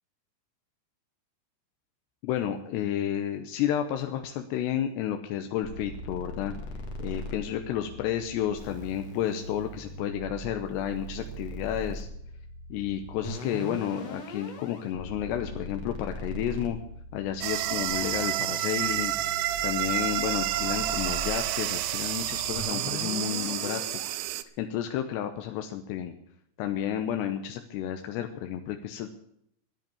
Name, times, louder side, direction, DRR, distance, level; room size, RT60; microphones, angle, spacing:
voice 1, 2.2-6.5 7.0-12.1 12.7-16.8 17.1-19.1 19.6-23.8 24.6-26.1 26.6-29.1, left 10 dB, 75° left, 6 dB, 2.8 m, -31 dB
sound 1, 5.7-24.2, equal, 50° left, 2.2 m, -41 dB
sound 2, 17.4-24.4, right 14 dB, 85° right, 3.0 m, -30 dB
13.5 x 10.5 x 7.0 m, 0.72 s
omnidirectional pair, 5.5 m